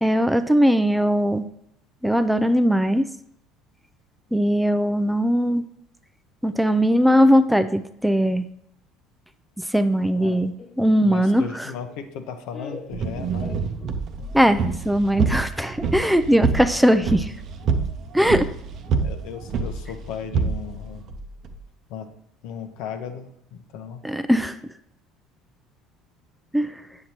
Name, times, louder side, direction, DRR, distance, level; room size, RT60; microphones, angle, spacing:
voice 1, 0.0-1.5 2.0-3.1 4.3-5.6 6.4-8.4 9.6-11.7 14.3-17.3 18.1-18.5 24.0-24.6 26.5-26.8, equal, 5° right, 10 dB, 0.4 m, -20 dB
Laughter, 10.6-14.2, left 3 dB, 30° left, 0.8 m, -43 dB
voice 2, 11.0-13.6 19.0-21.0 21.9-22.1 22.4-24.0, left 7 dB, 75° left, 7 dB, 0.8 m, -36 dB
sound 1, 12.9-21.6, right 5 dB, 55° right, 0.7 m, -27 dB
7.8 x 6.5 x 2.9 m, 0.75 s
supercardioid pair, 90°, 0 cm